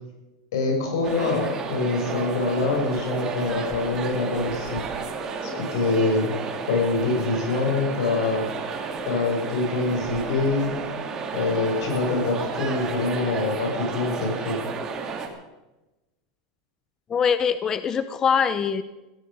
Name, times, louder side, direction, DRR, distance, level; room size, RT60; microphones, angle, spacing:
voice 1, 0.5-4.8 5.4-6.3 6.7-8.5 9.1-10.7 11.3-14.6, left 3 dB, 85° left, 1 dB, 6.1 m, -25 dB
sound 1, 1.0-15.3, right 4 dB, 25° right, 2.3 m, -32 dB
voice 2, 17.1-18.8, left 7 dB, 25° left, 13 dB, 0.7 m, -23 dB
15.5 x 15.5 x 5.2 m, 1.0 s
supercardioid pair, 145°, 2 cm